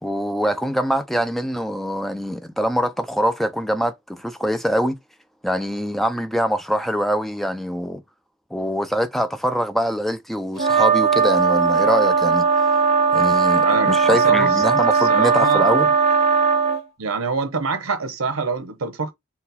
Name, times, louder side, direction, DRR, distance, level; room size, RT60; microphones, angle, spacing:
voice 1, 0.0-5.0 5.4-8.0 8.5-12.5 13.1-15.9, equal, ahead, 0.3 m, -23 dB
sound 1, 10.6-16.8, right 5 dB, 30° right, 1.0 m, -18 dB
voice 2, 13.6-14.5 14.8-15.7 17.0-19.1, right 5 dB, 85° right, 0.8 m, -25 dB
4.1 x 2.3 x 4.0 m
head